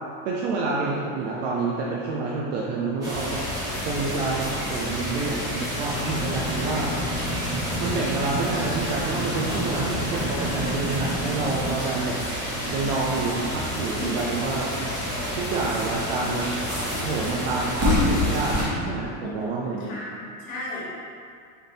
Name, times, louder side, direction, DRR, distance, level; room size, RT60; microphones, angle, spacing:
voice 1, 0.2-3.5 3.8-6.9 7.8-12.1 12.7-14.7 15.3-16.4 17.0-19.9, right 3 dB, 55° right, -4 dB, 0.5 m, -28 dB
sound 1, 3.0-18.6, left 1 dB, 10° right, 0.3 m, -29 dB
sound 2, 5.9-11.7, right 1 dB, 25° right, 1.2 m, -31 dB
voice 2, 6.3-6.9 14.0-14.1 19.2-21.0, left 2 dB, 60° left, -6 dB, 1.4 m, -36 dB
3.6 x 2.7 x 3.9 m, 2.2 s
supercardioid pair, 170°, 45 cm